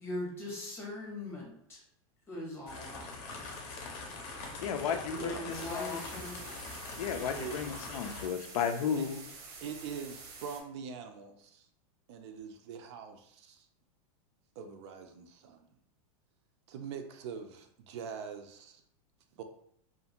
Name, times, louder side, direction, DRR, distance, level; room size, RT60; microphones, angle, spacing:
voice 1, 0.0-1.8 2.3-3.1 3.4-3.5 5.1-6.5, left 1 dB, 15° left, -3 dB, 0.8 m, -40 dB
sound 1, 2.7-8.3, left 3 dB, 45° left, 0.6 m, -43 dB
voice 2, 4.6-6.0 7.0-9.2, left 7 dB, 90° left, 7 dB, 0.4 m, -34 dB
voice 3, 5.1-5.5 7.1-7.7 8.0-8.1 9.0-9.1 9.6-11.7 12.1-13.7 14.6-15.7 16.7-18.8 19.4-19.5, right 7 dB, 50° right, 6 dB, 0.4 m, -43 dB
sound 2, 5.5-10.6, right 4 dB, 85° right, 0.8 m, -48 dB
2.5 x 2.4 x 2.8 m, 0.69 s
supercardioid pair, 160°, 18 cm